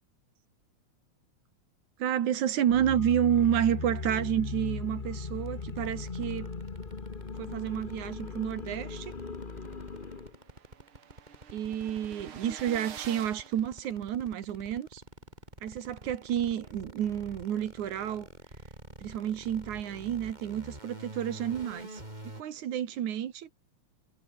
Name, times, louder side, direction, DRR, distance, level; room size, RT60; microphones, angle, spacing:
voice 1, 2.0-6.5 7.4-9.1 11.5-15.0 15.6-18.3 19.0-22.0 22.3-23.5, right 10 dB, 75° right, 3.1 m, -30 dB
sound 1, 2.7-10.4, left 4 dB, 35° left, 0.8 m, -38 dB
sound 2, 5.5-22.4, right 1 dB, 15° right, 6.9 m, -47 dB
sound 3, 8.9-9.0 9.4-9.5 9.6-14.5, right 8 dB, 45° right, 2.4 m, -48 dB
omnidirectional pair, 3.5 m